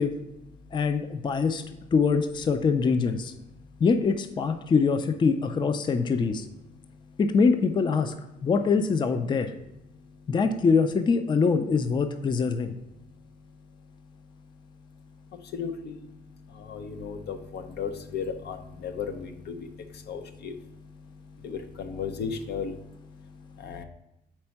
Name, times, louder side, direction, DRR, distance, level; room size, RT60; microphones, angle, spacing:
voice 1, 0.2-1.8 3.4-3.8 5.7-5.8 6.6-7.2 8.3-8.5 9.4-9.5 9.8-10.4 12.5-12.6 12.9-23.8, left 6 dB, 70° left, 7 dB, 0.7 m, -38 dB
voice 2, 0.7-1.6 1.9-3.3 3.8-6.4 7.2-8.1 8.4-9.5 10.3-12.7, left 5 dB, 25° left, 9 dB, 0.4 m, -24 dB
4.4 x 4.3 x 5.7 m, 0.88 s
cardioid pair, 115°, 18 cm